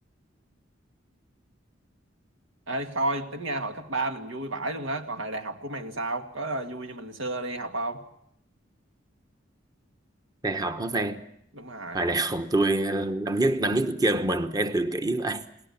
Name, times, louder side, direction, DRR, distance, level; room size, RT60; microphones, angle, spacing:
voice 1, 2.7-8.0 11.5-12.1, right 2 dB, 85° right, 2.2 m, -32 dB
voice 2, 10.4-11.2 11.9-15.4, right 2 dB, 20° right, 1.1 m, -26 dB
29.0 x 19.5 x 7.3 m
head